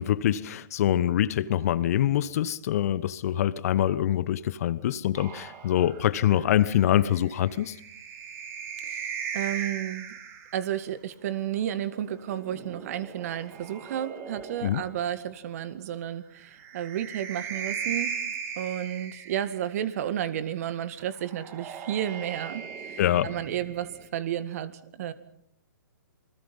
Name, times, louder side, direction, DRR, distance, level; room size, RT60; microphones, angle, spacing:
voice 1, 0.0-7.8 14.6-14.8 23.0-23.3, left 11 dB, 50° left, 17 dB, 1.2 m, -25 dB
sound 1, 5.1-10.7 12.1-15.0 16.4-19.9 21.1-24.1, right 6 dB, 25° right, 2.7 m, -38 dB
voice 2, 8.8-10.2 10.5-18.2 18.6-25.1, right 11 dB, 45° right, 13 dB, 1.9 m, -32 dB
28.0 x 21.0 x 5.6 m, 0.69 s
figure-of-eight pair, 130°, 11 cm